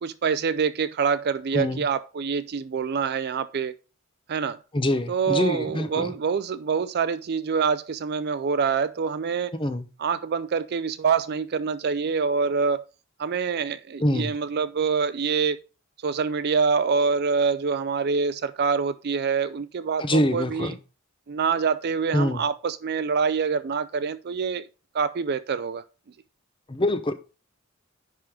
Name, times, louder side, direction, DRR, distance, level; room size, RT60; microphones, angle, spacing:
voice 1, 0.0-3.7 4.3-4.6 5.1-9.5 10.0-12.9 13.2-15.6 16.0-20.7 21.3-24.7 24.9-25.8, right 5 dB, 50° right, 0.4 m, -25 dB
voice 2, 4.7-6.1 9.5-9.9 14.0-14.3 20.0-20.8 22.1-22.4 26.7-27.1, left 1 dB, 25° left, 0.8 m, -25 dB
10.5 x 3.7 x 4.9 m
head